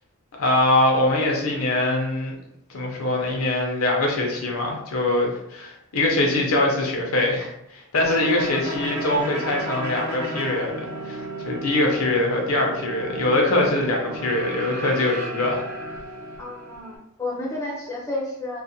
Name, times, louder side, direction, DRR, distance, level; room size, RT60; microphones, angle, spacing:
voice 1, 0.4-2.4 2.7-15.6, left 2 dB, 75° left, 0 dB, 0.6 m, -23 dB
sound 1, 8.0-17.0, right 1 dB, 50° right, 0.6 m, -33 dB
voice 2, 16.4-18.6, left 2 dB, 15° left, -4 dB, 0.4 m, -31 dB
2.4 x 2.1 x 2.7 m, 0.81 s
head